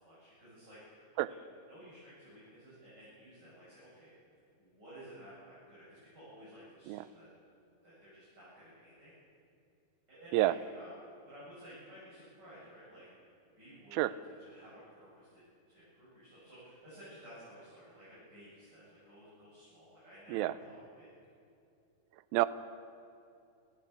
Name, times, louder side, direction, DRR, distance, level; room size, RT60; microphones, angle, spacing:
voice 1, 0.0-4.1 4.6-7.3 7.8-9.1 10.1-10.9 11.3-13.2 13.6-15.4 15.7-21.1, equal, 25° right, -10 dB, 8.6 m, -54 dB
voice 2, 1.2-1.3 6.9-7.0 10.3-10.5 13.9-14.1 20.3-20.5 22.3-22.5, right 16 dB, 80° right, 15 dB, 2.3 m, -28 dB
28.0 x 14.0 x 8.4 m, 2.6 s
omnidirectional pair, 4.5 m